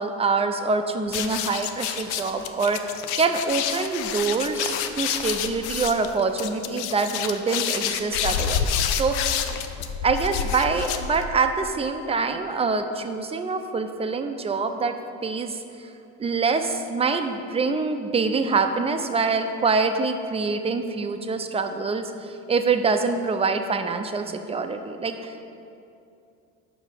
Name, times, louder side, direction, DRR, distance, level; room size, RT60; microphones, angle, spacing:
voice 1, 0.0-8.7 9.0-9.3 10.0-14.9 15.2-15.6 16.2-25.4, right 4 dB, 20° right, 7 dB, 0.5 m, -25 dB
sound 1, 1.1-11.5, left 8 dB, 90° left, 0.5 m, -28 dB
5.6 x 4.9 x 6.5 m, 2.6 s
supercardioid pair, 90°, 33 cm